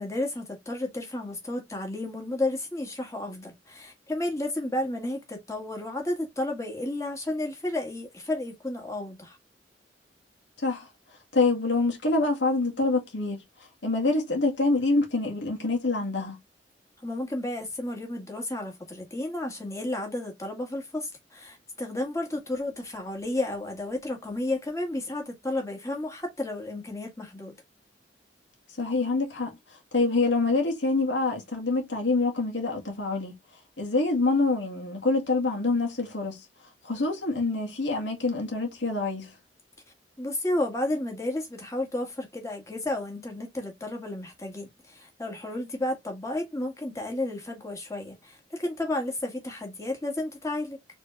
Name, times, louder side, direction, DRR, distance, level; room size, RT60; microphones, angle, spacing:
voice 1, 0.0-9.4 17.0-27.6 40.2-50.8, left 1 dB, 15° left, 1.8 m, -32 dB
voice 2, 11.3-13.4 13.8-16.4 28.8-29.5 29.9-33.3 33.8-36.4 36.8-39.3, left 3 dB, 80° left, 1.9 m, -26 dB
4.3 x 3.5 x 3.2 m
head